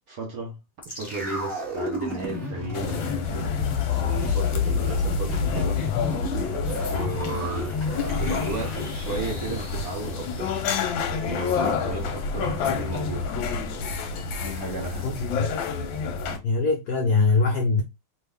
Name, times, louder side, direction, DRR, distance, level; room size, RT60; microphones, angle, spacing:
voice 1, 0.1-0.6 0.9-3.5 3.9-5.8 6.8-7.8 8.2-10.5 11.2-13.3 14.4-15.3, right 2 dB, 65° right, 0.9 m, -34 dB
sound 1, 0.8-11.0 11.2-11.3, left 4 dB, 15° left, 1.2 m, -29 dB
sound 2, 2.7-16.4, left 5 dB, 70° left, 1.3 m, -29 dB
voice 2, 15.0-15.5 16.3-17.8, left 3 dB, 90° left, 0.8 m, -22 dB
3.3 x 2.3 x 3.3 m
omnidirectional pair, 2.3 m